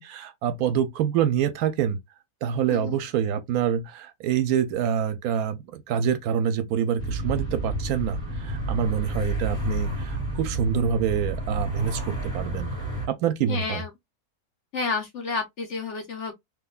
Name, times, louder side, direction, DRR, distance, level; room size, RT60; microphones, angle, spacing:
voice 1, 0.0-2.0 2.4-12.7 13.2-13.8, right 8 dB, 75° right, 1.0 m, -26 dB
sound 1, 7.0-13.1, right 2 dB, 5° left, 1.8 m, -30 dB
voice 2, 13.5-13.9 14.7-16.3, left 4 dB, 55° left, 0.9 m, -30 dB
3.7 x 2.6 x 2.3 m
omnidirectional pair, 1.7 m